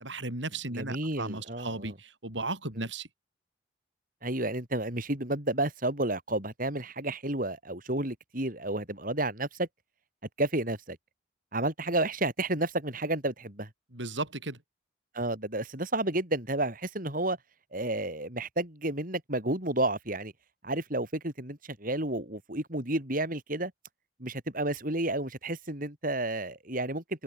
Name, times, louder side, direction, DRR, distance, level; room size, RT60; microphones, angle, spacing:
voice 1, 0.0-3.1 13.9-14.6, right 2 dB, 80° right, 7.8 m, -35 dB
voice 2, 0.7-2.0 2.8-2.9 4.2-9.7 10.4-11.0 11.5-13.7 15.1-17.4 17.7-20.3 20.6-23.7 24.2-27.2, right 2 dB, 50° right, 5.6 m, -31 dB
head